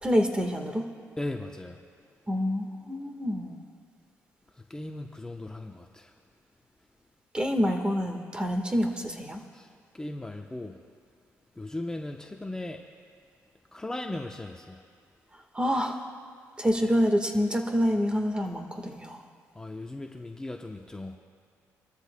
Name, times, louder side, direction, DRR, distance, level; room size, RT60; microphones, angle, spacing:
voice 1, 0.0-0.8 2.3-3.6 7.3-9.4 15.5-16.0 16.6-19.2, equal, 15° right, 5 dB, 1.5 m, -27 dB
voice 2, 1.2-1.8 4.7-6.1 9.5-9.7 9.9-10.8 11.6-12.8 13.7-14.8 19.6-21.2, left 2 dB, 10° left, 2 dB, 0.8 m, -37 dB
25.5 x 13.5 x 2.2 m, 2.2 s
cardioid pair, 85°, 6 cm